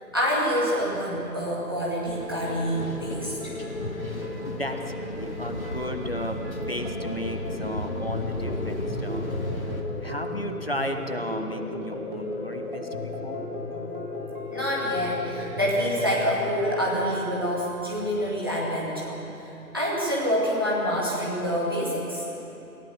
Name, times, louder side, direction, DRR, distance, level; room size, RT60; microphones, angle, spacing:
voice 1, 0.1-3.5 14.5-19.2 19.7-22.2, equal, 15° right, -6 dB, 2.2 m, -26 dB
sound 1, 2.0-9.8, left 1 dB, 60° left, 3.0 m, -34 dB
sound 2, 2.6-16.8, left 2 dB, 30° right, 3.6 m, -35 dB
voice 2, 4.4-6.4 6.7-9.3 10.0-13.4 17.3-17.5, equal, 40° left, 5 dB, 1.3 m, -34 dB
28.0 x 15.5 x 6.9 m, 3.0 s
figure-of-eight pair, 175°, 47 cm